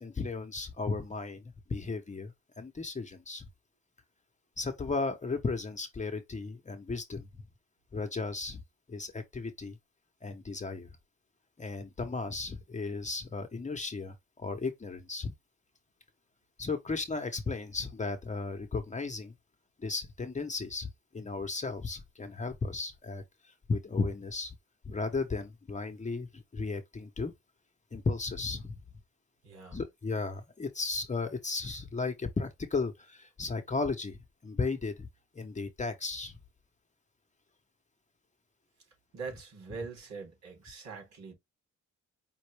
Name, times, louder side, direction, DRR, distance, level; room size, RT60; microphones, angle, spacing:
voice 1, 0.0-1.4 1.7-3.5 4.6-7.4 7.9-8.6 8.9-9.8 10.2-10.9 11.6-15.3 16.6-19.3 19.8-20.9 21.1-23.2 23.7-24.5 24.8-27.3 27.9-28.8 29.7-35.1 35.3-36.4, left 3 dB, 25° left, 0.9 m, -35 dB
voice 2, 29.4-29.8 39.1-41.3, right 5 dB, 65° right, 3.6 m, -43 dB
5.4 x 2.6 x 3.2 m
cardioid pair, 90°, 30 cm